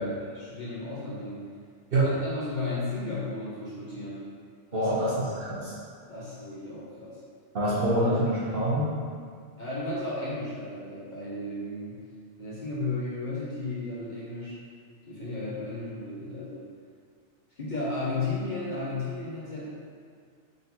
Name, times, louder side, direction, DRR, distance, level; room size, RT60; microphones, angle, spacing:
voice 1, 0.0-1.5 2.0-4.2 4.7-5.0 5.3-5.4 6.1-7.2 7.7-7.8 9.6-12.0 12.4-14.5 15.1-16.6 17.6-19.7, left 2 dB, 45° left, -8 dB, 0.8 m, -34 dB
voice 2, 4.7-5.7 7.5-8.9, right 1 dB, 55° right, -8 dB, 0.9 m, -25 dB
3.9 x 3.7 x 2.7 m, 2.1 s
omnidirectional pair, 1.3 m